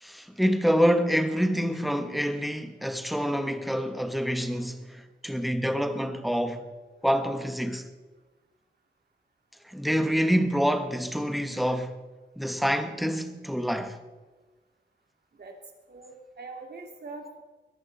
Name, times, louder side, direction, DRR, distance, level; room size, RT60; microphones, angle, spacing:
voice 1, 0.0-4.8 5.2-6.7 7.0-7.9 9.7-12.0 12.4-14.0, equal, ahead, 1.4 m, -26 dB
voice 2, 15.9-17.4, right 3 dB, 55° right, 3.0 m, -42 dB
22.0 x 14.0 x 4.2 m
cardioid pair, 80°, 19 cm